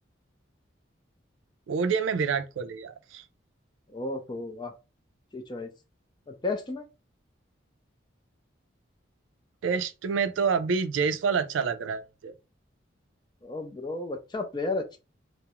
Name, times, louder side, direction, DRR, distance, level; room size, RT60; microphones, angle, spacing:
voice 1, 1.7-3.2 9.6-12.3, right 5 dB, 80° right, 0.3 m, -27 dB
voice 2, 3.9-4.7 5.3-5.7 6.3-6.8 13.4-15.0, left 3 dB, 20° left, 0.4 m, -33 dB
2.3 x 2.0 x 2.8 m
head